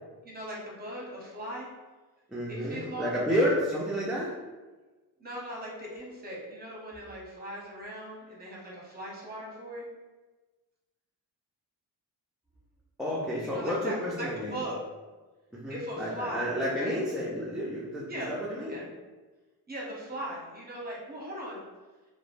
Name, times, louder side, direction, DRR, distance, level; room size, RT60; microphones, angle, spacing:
voice 1, 0.2-1.7 2.5-3.1 5.2-9.8 13.4-14.8 15.7-16.5 16.8-17.0 18.1-18.3 18.7-18.9 19.7-21.6, right 1 dB, 25° right, -4 dB, 0.8 m, -39 dB
voice 2, 2.3-4.3 13.0-14.6 15.5-18.8, equal, ahead, -7 dB, 0.3 m, -30 dB
3.0 x 2.1 x 2.5 m, 1.2 s
cardioid pair, 100°, 41 cm